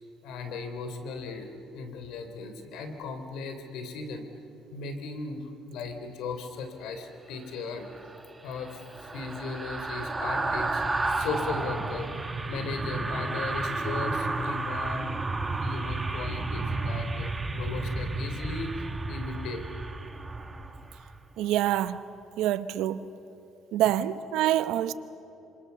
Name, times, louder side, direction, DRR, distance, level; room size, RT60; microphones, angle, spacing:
voice 1, 0.2-4.2 4.7-7.9 8.4-8.8 9.1-12.2 12.5-15.1 15.6-19.6, left 4 dB, 80° left, 3.3 m, -37 dB
sound 1, 7.8-21.2 21.5-21.7, right 2 dB, 15° right, 1.5 m, -32 dB
voice 2, 21.4-22.0 22.4-23.1 23.7-24.9, right 12 dB, 85° right, 1.0 m, -26 dB
26.5 x 26.0 x 6.9 m
cardioid pair, 120°, 0 cm